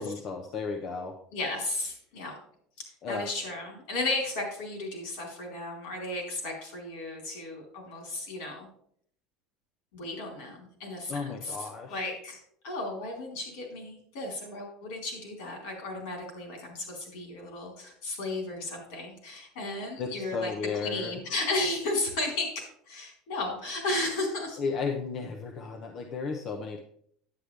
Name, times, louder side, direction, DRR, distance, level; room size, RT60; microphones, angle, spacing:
voice 1, 0.0-1.2 3.0-3.3 11.1-12.1 20.0-21.1 24.6-26.8, left 5 dB, 45° left, 3 dB, 0.9 m, -34 dB
voice 2, 1.3-2.4 3.1-8.7 9.9-12.4 12.6-24.6, left 2 dB, 75° left, 1 dB, 4.0 m, -34 dB
9.6 x 8.3 x 3.4 m, 0.65 s
supercardioid pair, 135°, 0 cm